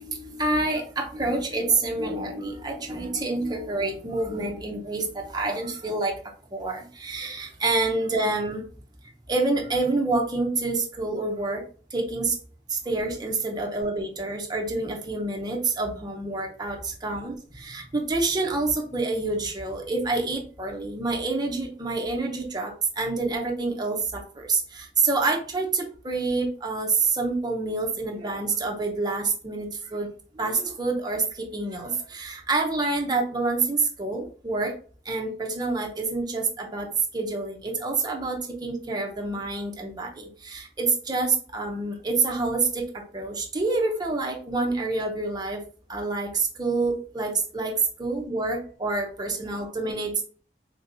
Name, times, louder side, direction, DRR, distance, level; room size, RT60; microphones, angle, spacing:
voice 1, 0.0-6.1 6.5-8.6 9.3-11.6 11.9-12.4 12.7-30.1 30.4-34.7 35.1-36.9 37.1-42.9 43.1-45.6 45.9-47.7 48.0-50.2, right 3 dB, 25° right, 1 dB, 0.7 m, -27 dB
3.6 x 2.8 x 2.6 m, 0.41 s
head